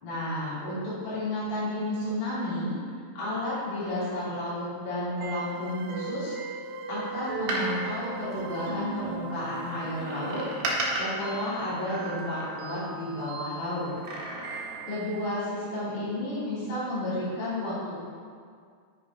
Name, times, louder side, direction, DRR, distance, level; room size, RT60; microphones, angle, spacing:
voice 1, 0.0-2.8 3.2-6.4 6.9-10.4 11.0-13.9 14.9-18.1, left 1 dB, 75° left, -11 dB, 5.3 m, -32 dB
sound 1, 5.2-15.4, right 5 dB, 85° right, 2.2 m, -39 dB
Door, 7.3-9.1 10.0-12.9 13.8-15.0 15.3-15.4, right 1 dB, 60° right, 2.0 m, -35 dB
10.0 x 6.6 x 4.8 m, 2.1 s
omnidirectional pair, 5.5 m